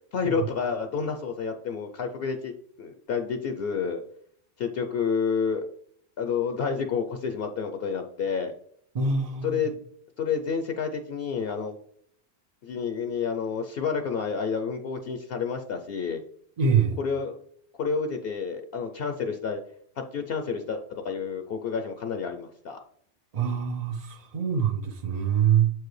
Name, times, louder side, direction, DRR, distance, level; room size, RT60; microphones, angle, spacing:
voice 1, 0.1-2.5 2.8-4.0 4.6-5.6 6.2-8.5 9.4-9.8 10.2-11.7 12.6-16.2 17.0-17.4 17.8-19.6 20.1-22.8, left 6 dB, 65° left, 6 dB, 0.7 m, -29 dB
voice 2, 8.9-9.6 16.6-17.0 23.3-25.7, right 7 dB, 50° right, 3 dB, 0.5 m, -24 dB
7.3 x 4.7 x 3.2 m, 0.66 s
omnidirectional pair, 1.2 m